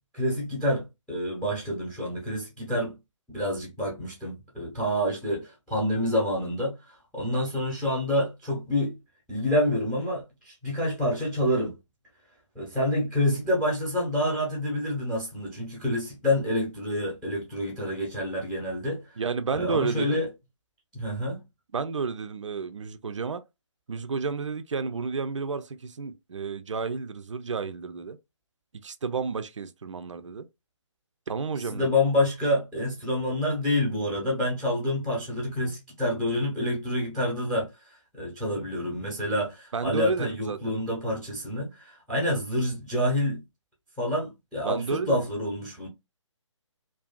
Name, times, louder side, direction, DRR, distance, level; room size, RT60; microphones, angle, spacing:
voice 1, 0.1-2.9 3.3-8.9 9.3-11.7 12.5-19.0 19.5-20.3 20.9-21.4 31.7-37.7 38.1-43.4 44.0-45.9, left 1 dB, ahead, 0.7 m, -28 dB
voice 2, 19.2-20.2 21.7-23.4 23.9-28.2 28.8-30.5 31.3-31.9 39.7-40.7 44.6-45.2, right 5 dB, 70° right, 0.4 m, -31 dB
2.4 x 2.3 x 2.3 m
figure-of-eight pair, 145°, 16 cm